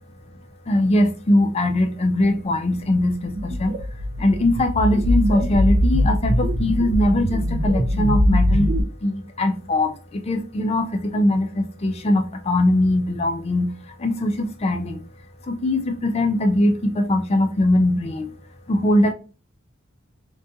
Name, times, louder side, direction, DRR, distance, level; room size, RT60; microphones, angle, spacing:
voice 1, 0.7-3.7 4.2-15.0 15.4-18.4 18.7-19.1, left 1 dB, 30° left, 0.4 m, -21 dB
sound 1, 3.3-8.8, equal, 40° right, 0.4 m, -21 dB
2.5 x 2.2 x 2.6 m
head